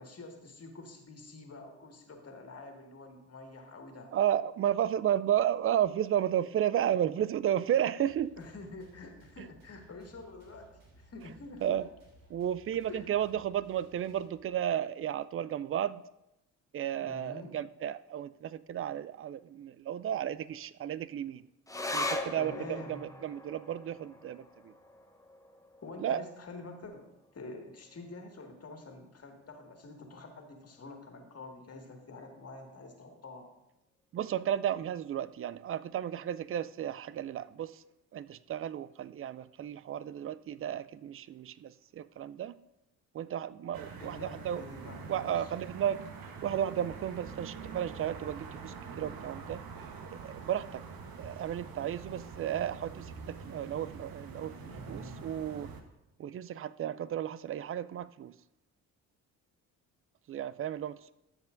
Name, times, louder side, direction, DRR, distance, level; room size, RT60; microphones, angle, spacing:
voice 1, 0.0-4.1 8.4-11.8 12.9-13.3 17.0-17.5 22.3-23.1 25.8-33.5 44.0-45.5 54.6-55.2, left 3 dB, 35° left, 2.0 m, -47 dB
voice 2, 4.1-8.4 11.6-11.8 12.3-16.0 16.7-21.4 21.9-24.7 26.0-26.2 34.1-37.8 38.1-42.6 43.1-44.6 45.1-46.0 46.4-49.6 50.2-50.8 51.2-54.5 54.9-55.7 56.2-58.3 60.3-61.1, right 10 dB, 35° right, 0.4 m, -33 dB
sound 1, 8.0-14.7, right 2 dB, 80° right, 3.0 m, -60 dB
sound 2, 21.7-28.4 28.8-28.9 29.2-29.9 30.4-30.5, left 2 dB, 10° left, 0.9 m, -41 dB
sound 3, 43.7-55.8, right 5 dB, 55° right, 1.2 m, -45 dB
13.0 x 7.4 x 2.6 m
hypercardioid pair, 55°, 42 cm